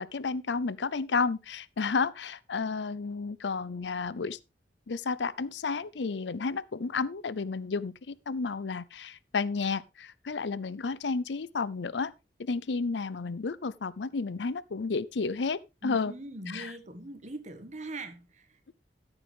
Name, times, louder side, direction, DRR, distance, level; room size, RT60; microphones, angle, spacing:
voice 1, 0.0-4.4 4.9-12.1 12.4-16.1 16.5-16.7, left 4 dB, 85° left, 0.6 m, -32 dB
voice 2, 15.8-18.6, right 2 dB, 40° right, 1.7 m, -41 dB
14.0 x 8.1 x 3.4 m
head